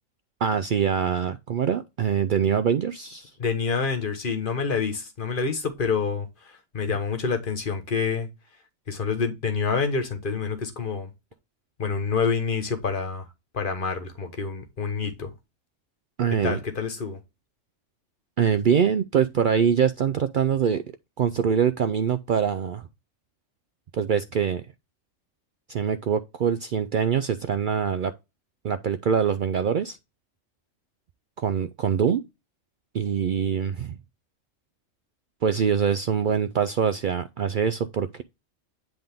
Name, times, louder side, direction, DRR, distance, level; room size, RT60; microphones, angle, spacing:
voice 1, 0.4-3.3 16.2-16.6 18.4-20.8 21.2-22.9 23.9-24.6 25.7-28.1 28.6-30.0 31.4-32.2 32.9-33.9 35.4-38.2, right 7 dB, 65° right, 0.5 m, -24 dB
voice 2, 3.4-6.3 6.7-8.3 8.9-11.1 11.8-13.2 13.5-15.3 16.4-17.2, left 5 dB, 45° left, 1.3 m, -27 dB
7.9 x 3.6 x 3.5 m
omnidirectional pair, 1.3 m